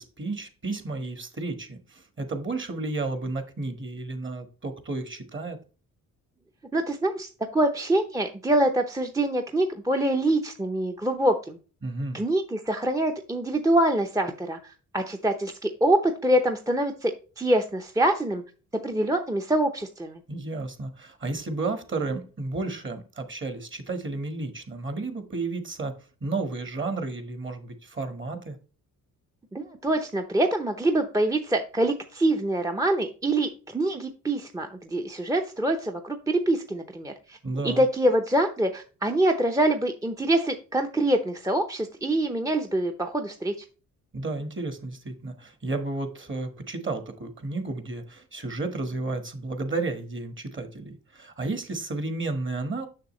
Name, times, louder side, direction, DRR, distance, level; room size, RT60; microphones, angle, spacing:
voice 1, 0.0-5.6 11.8-12.2 20.3-28.6 37.4-37.8 44.1-52.9, right 3 dB, 35° right, 1.6 m, -32 dB
voice 2, 6.7-11.6 12.1-18.4 18.8-20.2 29.5-37.4 37.6-43.5, right 1 dB, 10° right, 0.7 m, -25 dB
6.7 x 6.2 x 3.1 m
cardioid pair, 85°, 34 cm